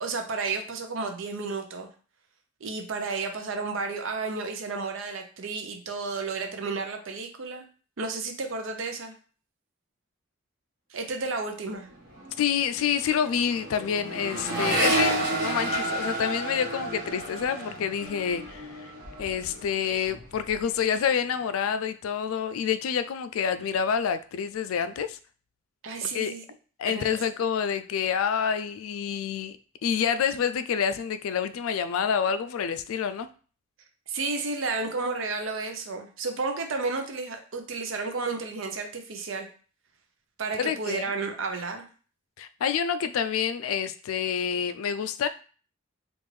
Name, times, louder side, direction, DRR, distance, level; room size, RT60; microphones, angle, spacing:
voice 1, 0.0-1.9 2.6-7.7 8.0-9.1 10.9-11.9 25.8-26.4 26.8-27.2 34.1-39.5 40.4-41.9, right 4 dB, 75° right, 5 dB, 0.6 m, -32 dB
Accelerating revving vroom, 11.7-11.9 12.1-19.7 20.0-20.6, right 1 dB, 50° right, 1.0 m, -31 dB
voice 2, 12.4-18.9 19.2-25.2 26.0-26.3 26.8-29.6 29.8-33.3 40.6-41.1 42.4-45.3, left 7 dB, 90° left, 11 dB, 0.3 m, -28 dB
3.5 x 2.5 x 3.2 m, 0.40 s
head